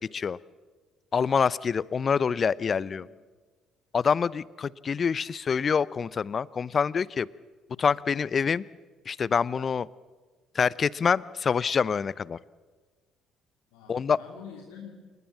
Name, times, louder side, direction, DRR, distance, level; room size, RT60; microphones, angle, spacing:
voice 1, 1.1-3.1 3.9-7.3 7.8-8.6 9.1-9.9 10.5-12.4 13.9-14.2, left 6 dB, 40° left, 22 dB, 0.7 m, -26 dB
voice 2, 2.5-3.1 13.7-14.9, left 7 dB, 75° left, 0 dB, 2.8 m, -47 dB
28.5 x 19.5 x 7.5 m, 1.4 s
hypercardioid pair, 50°, 0 cm